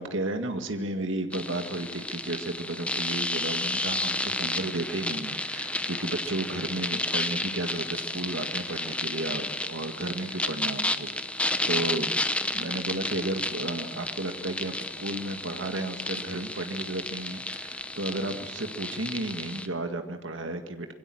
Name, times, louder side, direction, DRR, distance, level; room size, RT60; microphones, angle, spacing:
voice 1, 0.0-11.1 11.7-12.1 12.5-20.9, right 2 dB, 80° right, 6 dB, 1.9 m, -33 dB
sound 1, 1.3-19.7, left 2 dB, 5° left, 1.0 m, -32 dB
26.5 x 22.5 x 7.8 m, 1.2 s
head